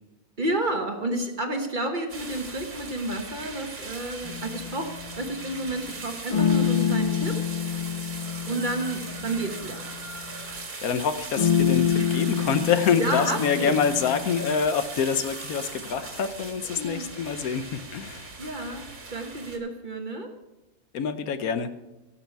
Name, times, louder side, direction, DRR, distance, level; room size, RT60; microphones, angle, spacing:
voice 1, 0.4-7.5 8.5-9.8 12.0-12.1 13.0-13.8 16.8-17.1 18.4-20.3, right 2 dB, 35° right, 4 dB, 1.2 m, -31 dB
sound 1, 2.1-19.6, right 3 dB, 65° right, 2.3 m, -39 dB
sound 2, 4.2-5.2 6.3-10.4 11.3-14.6, left 8 dB, 50° left, 0.4 m, -27 dB
voice 2, 10.8-18.3 20.9-21.7, left 6 dB, 75° left, 11 dB, 1.2 m, -26 dB
17.0 x 6.9 x 4.6 m, 1.1 s
omnidirectional pair, 1.6 m